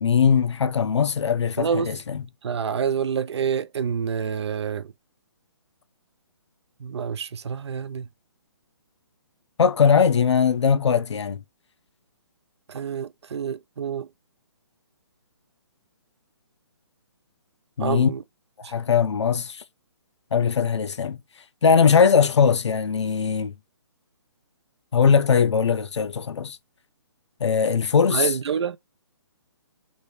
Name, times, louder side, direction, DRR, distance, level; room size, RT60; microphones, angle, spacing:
voice 1, 0.0-2.2 9.6-11.4 17.8-18.1 18.7-19.6 20.3-21.2 21.6-23.5 24.9-26.6 27.4-28.3, left 6 dB, 85° left, 0.6 m, -20 dB
voice 2, 1.6-1.9 2.4-4.9 6.8-8.1 12.7-14.1 17.8-18.2 18.6-18.8 28.1-28.8, right 7 dB, 70° right, 0.5 m, -27 dB
3.1 x 2.6 x 3.2 m
hypercardioid pair, 160°, 14 cm